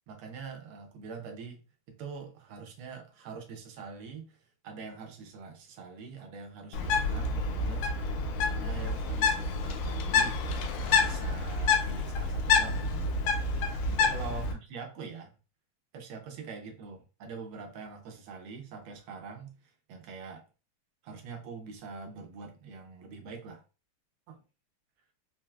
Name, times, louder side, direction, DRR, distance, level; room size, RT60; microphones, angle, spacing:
voice 1, 0.1-1.6 1.9-4.4 4.6-7.9 8.4-10.4 10.7-13.1 13.9-15.3 15.9-19.5 19.9-20.4 21.0-23.6 24.3-24.4, right 5 dB, 80° right, 1.6 m, -44 dB
Bird, 6.7-14.5, left 4 dB, 85° left, 1.5 m, -28 dB
4.4 x 2.0 x 2.2 m
omnidirectional pair, 2.3 m